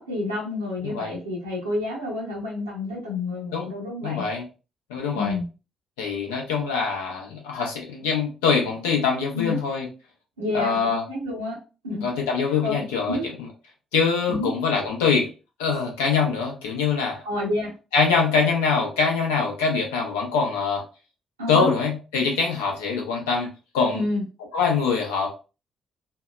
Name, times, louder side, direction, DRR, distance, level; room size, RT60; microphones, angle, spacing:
voice 1, 0.0-4.2 5.1-5.5 9.3-9.6 10.4-11.6 11.8-12.0 12.6-13.3 14.3-14.5 17.2-17.7 21.4-21.7 23.9-24.2, left 2 dB, 85° right, -3 dB, 0.7 m, -29 dB
voice 2, 0.8-1.1 3.5-3.7 4.0-4.4 4.9-5.3 6.0-9.9 10.5-11.0 12.0-13.3 13.9-15.3 15.6-17.2 17.9-20.8 21.5-23.5 23.7-24.0 24.5-25.3, left 5 dB, 75° left, 0 dB, 0.6 m, -24 dB
2.7 x 2.1 x 2.3 m, 0.33 s
figure-of-eight pair, 45°, 0 cm